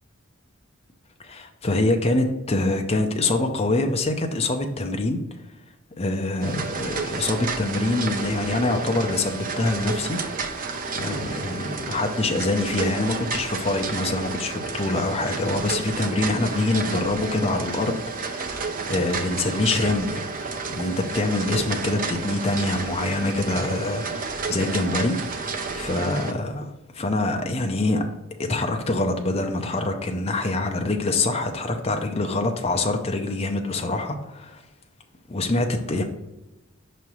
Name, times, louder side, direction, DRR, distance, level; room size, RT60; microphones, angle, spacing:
voice 1, 1.2-5.2 6.0-10.2 10.5-10.6 11.0-18.5 18.9-25.2 25.7-28.0 28.5-34.6 35.3-36.0, left 2 dB, 30° left, 3 dB, 0.6 m, -25 dB
sound 1, 6.4-26.3, right 4 dB, 40° right, 0.6 m, -31 dB
5.8 x 3.1 x 5.4 m, 0.99 s
head